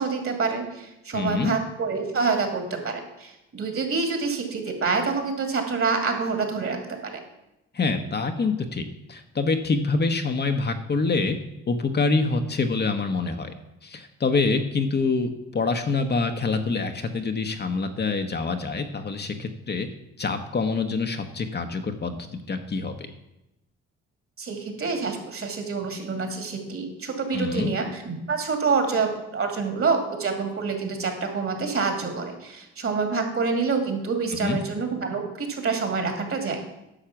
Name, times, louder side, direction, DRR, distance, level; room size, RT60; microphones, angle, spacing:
voice 1, 0.0-7.2 24.4-36.6, right 4 dB, 45° right, 5 dB, 2.3 m, -27 dB
voice 2, 1.1-1.5 7.7-11.4 11.7-13.5 13.8-19.9 20.2-23.1 27.3-27.7 34.3-34.6, left 4 dB, 35° left, 6 dB, 1.0 m, -26 dB
10.0 x 6.4 x 5.9 m, 0.89 s
cardioid pair, 90°, 30 cm